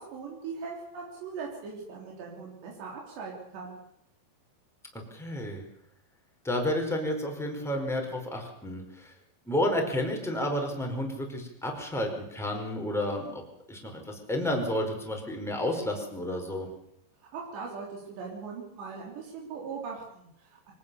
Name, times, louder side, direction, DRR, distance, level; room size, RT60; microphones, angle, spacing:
voice 1, 0.0-3.8 17.2-20.7, right 5 dB, 75° right, -2 dB, 5.6 m, -40 dB
voice 2, 5.1-5.6 6.4-9.1 9.5-13.4 13.7-16.7, left 1 dB, ahead, 2 dB, 4.3 m, -31 dB
24.5 x 18.5 x 7.1 m, 0.77 s
omnidirectional pair, 5.1 m